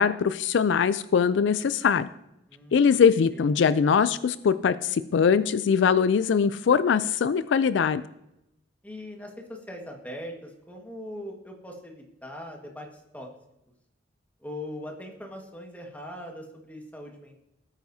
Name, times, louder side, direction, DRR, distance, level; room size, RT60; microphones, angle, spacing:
voice 1, 0.0-2.1 2.7-8.0, left 6 dB, 70° left, 14 dB, 0.4 m, -22 dB
voice 2, 2.5-3.0 3.3-3.5 8.8-12.9 13.1-13.3 14.4-17.4, left 1 dB, 10° left, 1 dB, 1.6 m, -40 dB
17.0 x 9.1 x 2.7 m, 0.86 s
head